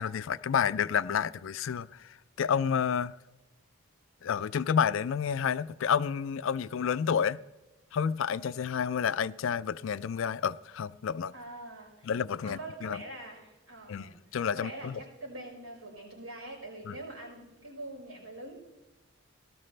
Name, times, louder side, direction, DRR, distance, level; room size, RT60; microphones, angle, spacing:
voice 1, 0.0-3.1 4.2-7.4 7.9-11.3 12.0-13.0 13.9-15.0 16.9-17.0, left 7 dB, 70° left, 0.4 m, -30 dB
voice 2, 11.3-12.1 12.4-14.2 14.5-18.5, right 1 dB, 85° right, 5.3 m, -44 dB
18.0 x 12.5 x 3.3 m
head